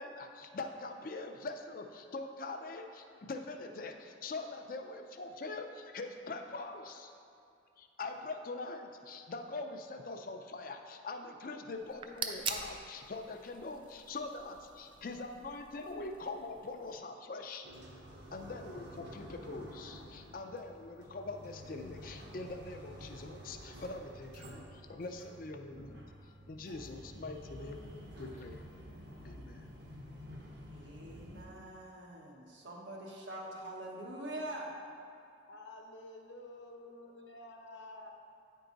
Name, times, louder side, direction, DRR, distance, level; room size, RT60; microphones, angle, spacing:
voice 1, 0.0-7.1 7.8-17.7 18.3-26.0 26.5-27.8 28.2-28.6 29.2-29.7, left 3 dB, 50° left, 6 dB, 0.5 m, -43 dB
sound 1, 11.8-17.0, right 5 dB, 30° right, 0.3 m, -44 dB
sound 2, 17.6-31.4, equal, 70° right, 1.1 m, -50 dB
voice 2, 30.7-34.7, right 1 dB, 85° right, -3 dB, 1.3 m, -44 dB
voice 3, 35.5-38.1, left 2 dB, 80° left, 1 dB, 0.8 m, -50 dB
9.3 x 4.6 x 3.9 m, 2.5 s
head